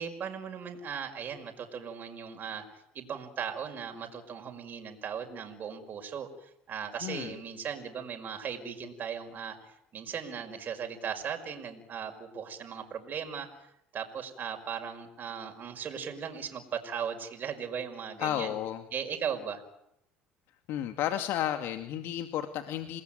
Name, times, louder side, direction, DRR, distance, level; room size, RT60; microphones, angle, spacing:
voice 1, 0.0-13.5 13.9-18.6 18.9-19.6, right 7 dB, 45° right, 3 dB, 5.7 m, -38 dB
voice 2, 7.0-7.3 18.2-18.8 20.7-23.0, left 11 dB, 65° left, 7 dB, 2.3 m, -32 dB
29.0 x 20.5 x 9.3 m, 0.78 s
supercardioid pair, 90°, 4 cm